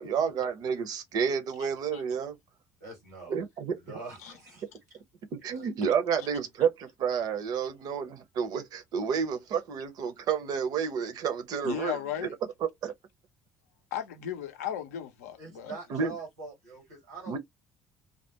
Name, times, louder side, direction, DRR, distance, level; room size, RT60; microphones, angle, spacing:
voice 1, 0.0-2.4 3.3-3.8 5.3-12.0 12.6-12.9 15.9-16.1 17.3-17.4, right 7 dB, 50° right, 0.6 m, -30 dB
voice 2, 2.8-3.4 3.7-4.6 5.5-5.7 15.4-17.4, right 3 dB, 85° right, 1.1 m, -43 dB
voice 3, 11.6-12.4 13.9-15.8, left 10 dB, 75° left, 0.5 m, -35 dB
2.3 x 2.1 x 2.8 m
figure-of-eight pair, 55°, 8 cm